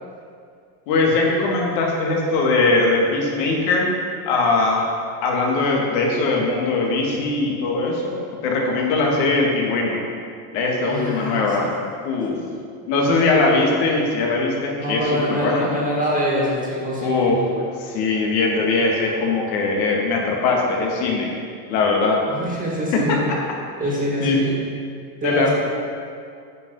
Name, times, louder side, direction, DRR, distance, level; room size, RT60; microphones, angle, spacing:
voice 1, 0.9-4.0 4.3-4.9 5.2-8.2 8.4-10.0 10.5-11.7 12.0-12.4 12.9-15.7 17.0-17.4 17.8-21.3 21.7-22.2 22.9-23.4 24.2-24.4 25.2-25.5, left 3 dB, 80° left, -1 dB, 2.2 m, -20 dB
voice 2, 10.9-11.7 12.3-12.4 14.7-17.5 22.3-23.2 23.8-24.6 25.2-25.5, equal, 15° right, -4 dB, 1.8 m, -25 dB
9.1 x 6.0 x 5.5 m, 2.3 s
cardioid pair, 135°, 49 cm